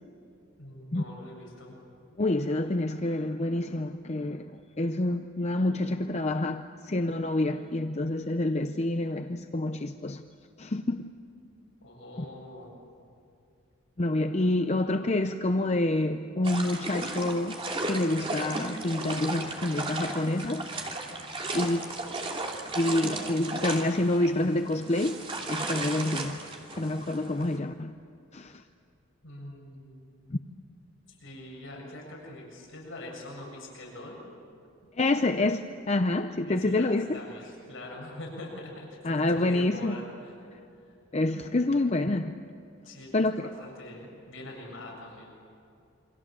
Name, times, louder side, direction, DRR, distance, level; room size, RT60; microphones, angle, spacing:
voice 1, 0.6-1.8 11.8-12.8 29.2-30.0 31.2-34.3 35.2-35.3 36.5-40.3 40.8-40.9 42.8-45.3, left 1 dB, 70° left, -1 dB, 7.2 m, -43 dB
voice 2, 2.2-4.5 4.8-10.2 10.6-11.1 14.0-17.6 17.8-20.7 21.5-21.8 22.8-25.2 25.5-26.4 26.7-27.9 28.3-28.6 30.3-30.4 35.0-37.2 39.0-40.0 41.1-42.3 43.1-43.5, left 2 dB, 35° left, 8 dB, 0.6 m, -27 dB
sound 1, 16.4-27.6, right 2 dB, 25° right, 2.8 m, -35 dB
28.0 x 25.0 x 7.5 m, 2.5 s
head